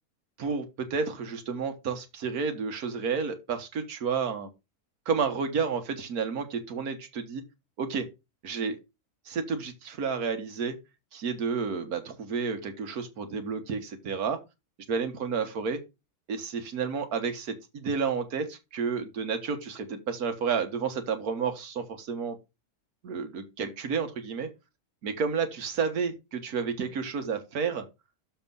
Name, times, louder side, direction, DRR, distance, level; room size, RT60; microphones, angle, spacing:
voice 1, 0.4-4.5 5.0-7.4 7.8-8.1 8.4-8.8 9.2-10.7 11.1-14.4 14.9-15.8 16.3-22.4 23.0-24.5 25.0-27.8, right 5 dB, 75° right, 7 dB, 1.7 m, -31 dB
6.9 x 4.4 x 5.3 m, 0.25 s
omnidirectional pair, 1.6 m